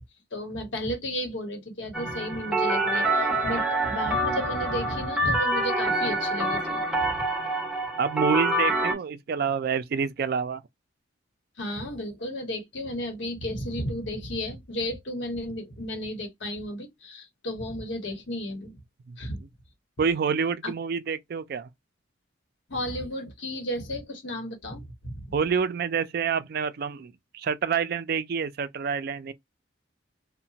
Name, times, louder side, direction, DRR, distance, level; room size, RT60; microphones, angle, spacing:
voice 1, 0.3-7.2 11.6-18.8 19.2-19.4 20.6-20.7 22.7-25.3, equal, 75° left, 1.0 m, -33 dB
sound 1, 1.9-8.9, right 1 dB, 5° right, 1.0 m, -26 dB
voice 2, 8.0-10.6 19.1-19.5 20.0-21.7 25.3-29.3, right 6 dB, 55° right, 0.3 m, -28 dB
2.8 x 2.1 x 2.7 m
head